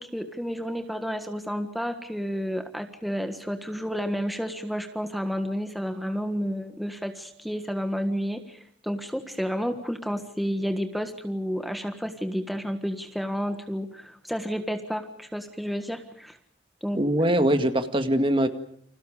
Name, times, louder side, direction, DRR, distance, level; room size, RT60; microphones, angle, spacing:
voice 1, 0.0-16.4 16.8-17.0, equal, ahead, 6 dB, 1.5 m, -31 dB
voice 2, 16.9-18.5, right 1 dB, 30° right, 8 dB, 2.0 m, -22 dB
30.0 x 26.5 x 5.1 m, 0.66 s
head